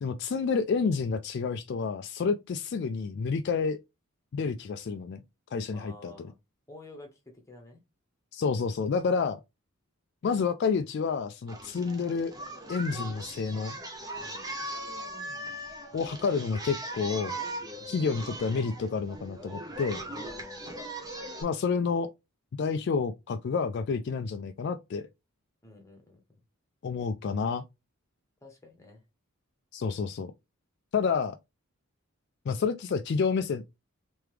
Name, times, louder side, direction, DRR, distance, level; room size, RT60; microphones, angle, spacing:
voice 1, 0.0-3.8 4.3-5.2 5.5-6.1 8.3-9.4 10.2-12.3 12.7-13.8 15.9-17.4 17.9-20.0 21.4-22.1 22.6-25.1 26.8-27.6 29.7-30.3 30.9-31.4 32.5-33.6, left 5 dB, 50° left, 0.3 m, -29 dB
voice 2, 5.7-6.4 6.7-7.8 14.2-14.5 17.8-18.0 20.1-20.8 25.6-26.2 28.4-29.0, left 2 dB, 15° left, 1.1 m, -50 dB
Singing, 11.5-21.4, right 1 dB, 15° right, 0.7 m, -39 dB
3.4 x 3.2 x 3.3 m
head